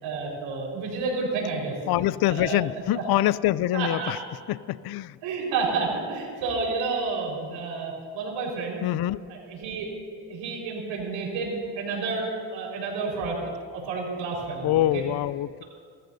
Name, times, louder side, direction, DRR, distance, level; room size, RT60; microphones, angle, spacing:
voice 1, 0.0-1.7 2.3-2.6 3.0-3.1 3.7-4.1 5.2-8.8 9.3-9.9 10.2-13.4 13.7-15.0, right 4 dB, 85° right, -2 dB, 4.9 m, -30 dB
voice 2, 1.9-4.2 4.5-5.2 8.8-9.2 14.6-15.6, left 14 dB, 55° left, 18 dB, 0.5 m, -25 dB
30.0 x 14.5 x 2.7 m, 2.1 s
supercardioid pair, 75°, 44 cm